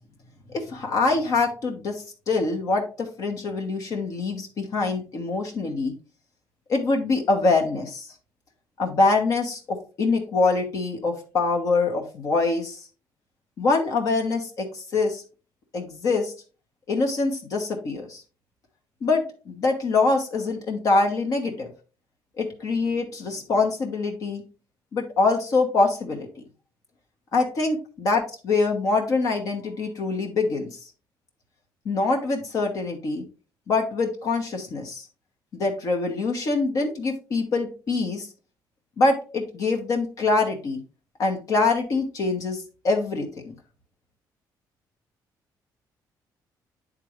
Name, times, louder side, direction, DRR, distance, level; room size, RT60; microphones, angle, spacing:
voice 1, 0.5-5.9 6.7-8.1 8.8-12.8 13.6-15.2 15.7-16.3 16.9-18.2 19.0-21.7 22.4-24.4 24.9-26.3 27.3-30.8 31.8-33.2 33.7-35.0 35.5-38.3 39.0-40.8 41.2-43.5, left 3 dB, 50° left, 2 dB, 1.1 m, -24 dB
9.9 x 3.8 x 3.0 m, 0.35 s
cardioid pair, 155°, 8 cm